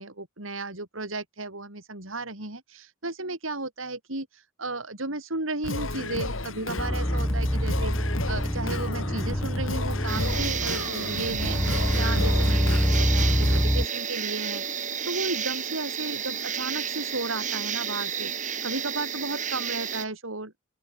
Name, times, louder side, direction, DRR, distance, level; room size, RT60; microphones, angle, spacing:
voice 1, 0.0-7.9 8.3-20.6, right 2 dB, 85° right, 6.4 m, -34 dB
Singing, 5.6-13.6, left 2 dB, 90° left, 3.5 m, -33 dB
sound 1, 6.8-10.9 11.4-13.9, equal, 5° left, 2.4 m, -25 dB
sound 2, 10.1-20.1, right 7 dB, 40° right, 4.9 m, -31 dB
open air
head